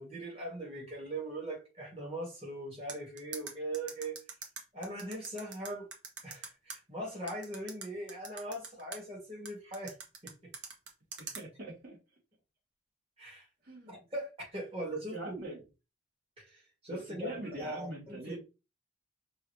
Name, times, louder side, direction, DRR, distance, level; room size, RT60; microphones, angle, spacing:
voice 1, 0.0-4.2 4.7-5.9 6.2-10.0 10.2-10.5 13.2-13.4 13.9-15.4 16.4-18.4, right 1 dB, 30° right, 2.0 m, -40 dB
sound 1, 2.9-6.8 7.3-9.0 9.5-11.4, right 5 dB, 70° right, 1.2 m, -43 dB
voice 2, 11.2-12.0 13.6-14.1 14.9-15.6 16.9-18.4, right 1 dB, 50° right, 2.5 m, -43 dB
5.4 x 2.8 x 3.2 m
head